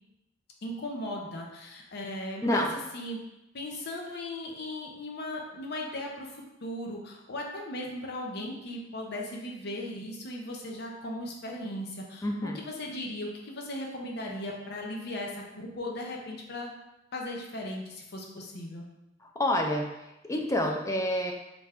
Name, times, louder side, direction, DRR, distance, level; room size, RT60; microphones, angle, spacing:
voice 1, 0.6-2.7 2.9-3.2 3.5-16.7 17.1-18.9, left 1 dB, 55° left, 0 dB, 0.6 m, -37 dB
voice 2, 2.4-2.8 12.2-12.6 19.2-21.3, left 1 dB, 15° left, 2 dB, 0.4 m, -28 dB
3.2 x 2.5 x 3.4 m, 0.93 s
head